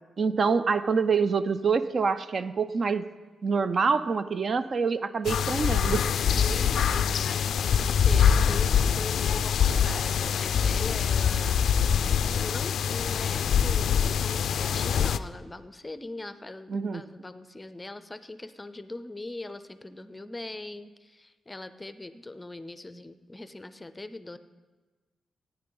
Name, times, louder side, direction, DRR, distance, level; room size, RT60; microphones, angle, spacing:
voice 1, 0.2-3.1 3.4-6.1 16.7-17.0, right 5 dB, 45° right, 12 dB, 0.4 m, -26 dB
sound 1, 5.2-15.2, left 7 dB, 80° left, 0.3 m, -24 dB
voice 2, 6.3-24.4, left 2 dB, 15° left, 12 dB, 0.5 m, -41 dB
16.5 x 9.6 x 3.9 m, 1.3 s
cardioid pair, 115°, 0 cm